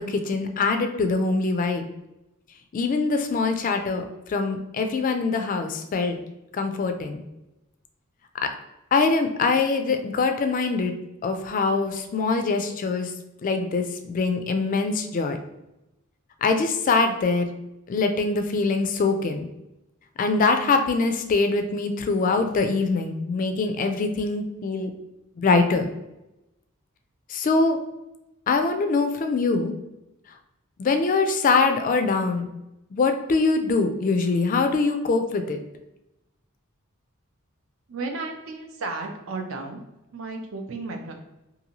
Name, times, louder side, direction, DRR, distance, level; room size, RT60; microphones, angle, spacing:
voice 1, 0.0-1.9 2.7-6.2 6.5-7.2 8.4-8.5 8.9-10.9 11.2-13.1 13.4-15.4 16.4-17.5 17.9-19.5 20.2-24.9 25.4-25.9 27.3-27.8 28.5-29.7 30.8-32.5 32.9-35.6, left 4 dB, 40° left, 6 dB, 0.3 m, -23 dB
voice 2, 37.9-39.8 40.1-41.1, right 3 dB, 70° right, 3 dB, 0.5 m, -33 dB
2.7 x 2.5 x 2.8 m, 0.93 s
head